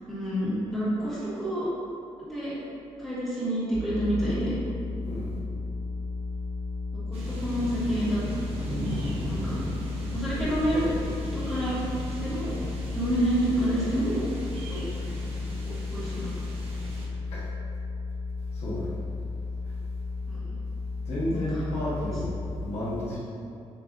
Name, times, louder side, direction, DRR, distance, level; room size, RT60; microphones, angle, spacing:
voice 1, 0.1-1.7 2.2-2.6 3.0-4.6 6.9-9.6 10.1-10.9 11.3-11.8 12.2-12.6 12.9-14.2 14.7-14.8 15.6-16.3 20.3-20.4 21.2-21.6, right 1 dB, 5° left, -12 dB, 1.4 m, -29 dB
sound 1, 3.7-22.6, left 3 dB, 50° left, 1.3 m, -34 dB
voice 2, 5.0-5.4 17.3-17.5 18.5-18.9 21.0-23.2, left 1 dB, 70° left, -9 dB, 1.3 m, -32 dB
sound 2, 7.1-17.1, right 1 dB, 60° right, 0.8 m, -38 dB
7.1 x 2.7 x 2.5 m, 2.4 s
wide cardioid pair, 165°, 11 cm